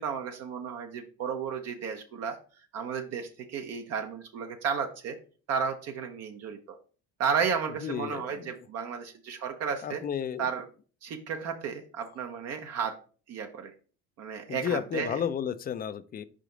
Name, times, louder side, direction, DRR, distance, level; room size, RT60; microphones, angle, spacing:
voice 1, 0.0-2.4 2.7-5.2 5.5-6.8 7.2-10.0 10.4-10.6 11.0-12.9 13.3-13.7 14.2-15.2, right 6 dB, 60° right, 4 dB, 0.8 m, -33 dB
voice 2, 7.8-8.5 9.8-10.5 14.5-16.2, left 8 dB, 30° left, 14 dB, 0.4 m, -32 dB
5.0 x 4.9 x 3.8 m, 0.39 s
supercardioid pair, 95°, 29 cm